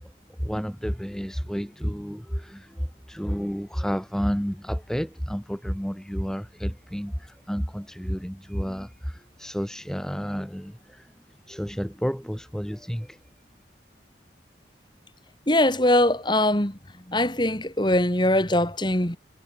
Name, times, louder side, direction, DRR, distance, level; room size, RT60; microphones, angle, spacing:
voice 1, 0.0-11.1 11.5-13.2, equal, 5° left, 2.5 m, -31 dB
voice 2, 15.5-16.8 17.1-19.2, left 1 dB, 25° left, 3.5 m, -22 dB
head